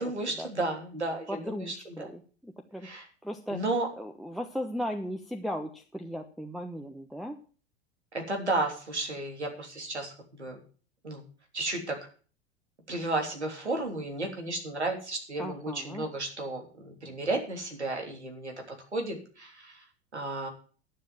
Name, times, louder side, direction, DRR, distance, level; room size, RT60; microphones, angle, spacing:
voice 1, 0.0-2.1 2.8-3.1 3.5-3.9 8.1-10.6 11.0-11.2 11.5-12.0 12.9-19.8 20.1-20.5, right 2 dB, 85° right, 2 dB, 3.3 m, -33 dB
voice 2, 1.3-2.9 3.2-3.6 4.0-7.4 15.4-16.0, equal, ahead, 5 dB, 1.1 m, -37 dB
11.5 x 7.5 x 7.5 m, 0.40 s
figure-of-eight pair, 85°, 33 cm